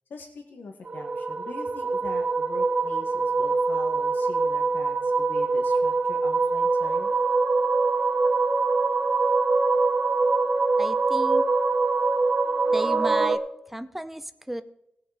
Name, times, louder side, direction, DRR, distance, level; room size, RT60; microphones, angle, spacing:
voice 1, 0.1-7.1, left 3 dB, 75° left, 3 dB, 2.0 m, -43 dB
sound 1, 0.9-13.4, right 3 dB, 45° right, 1.3 m, -24 dB
voice 2, 10.8-11.5 12.7-13.4 13.7-14.6, right 1 dB, 5° right, 11 dB, 0.7 m, -34 dB
19.0 x 6.9 x 5.2 m, 0.79 s
wide cardioid pair, 175°, 3 cm